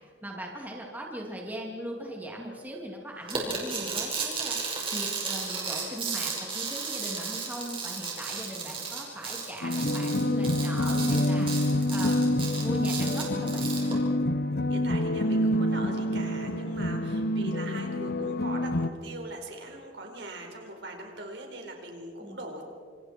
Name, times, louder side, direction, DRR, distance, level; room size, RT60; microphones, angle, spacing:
voice 1, 0.2-13.7 16.8-17.1 22.2-22.4, equal, 10° right, -1 dB, 2.7 m, -39 dB
sound 1, 3.3-13.9, right 5 dB, 30° right, 5.1 m, -34 dB
sound 2, 9.6-18.9, left 1 dB, 50° left, 0.9 m, -27 dB
voice 2, 14.7-22.6, right 2 dB, 65° right, 2 dB, 4.4 m, -41 dB
28.5 x 27.5 x 4.5 m, 2.1 s
head